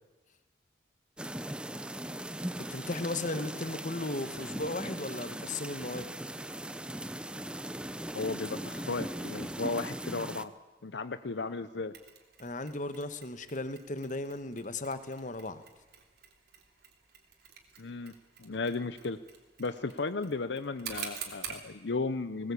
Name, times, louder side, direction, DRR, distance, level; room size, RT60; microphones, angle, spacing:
sound 1, 1.2-10.4, right 1 dB, 5° right, 0.6 m, -39 dB
voice 1, 2.4-6.1 12.4-15.6, left 2 dB, 45° left, 11 dB, 1.3 m, -36 dB
voice 2, 8.1-10.5 10.8-11.9 17.8-18.1 18.4-19.2 19.6-22.5, left 3 dB, 75° left, 12 dB, 0.7 m, -35 dB
Mechanisms, 11.9-21.7, right 8 dB, 60° right, 3.3 m, -48 dB
20.0 x 19.5 x 8.5 m, 1.1 s
head